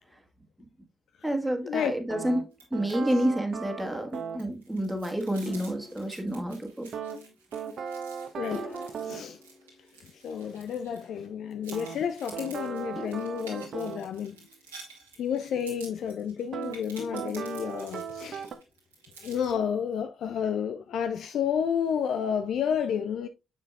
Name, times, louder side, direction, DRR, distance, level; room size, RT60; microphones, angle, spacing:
voice 1, 1.2-6.9, right 1 dB, 5° right, 1.6 m, -29 dB
sound 1, 2.1-4.5 6.9-9.3 11.7-14.1 16.5-16.8 17.1-18.5, right 7 dB, 55° right, 0.8 m, -37 dB
sound 2, 2.5-3.0 3.3-3.4 3.8-11.3 11.6-19.5, right 4 dB, 90° right, 1.7 m, -51 dB
sound 3, 5.5-7.0 8.5-10.4 13.0-14.6 17.0-18.1, left 2 dB, 45° left, 1.2 m, -45 dB
voice 2, 8.4-8.7 9.0-9.4 10.0-14.4 15.2-18.5 19.2-23.3, left 8 dB, 60° left, 0.4 m, -31 dB
6.8 x 6.2 x 2.3 m
hypercardioid pair, 40°, 0 cm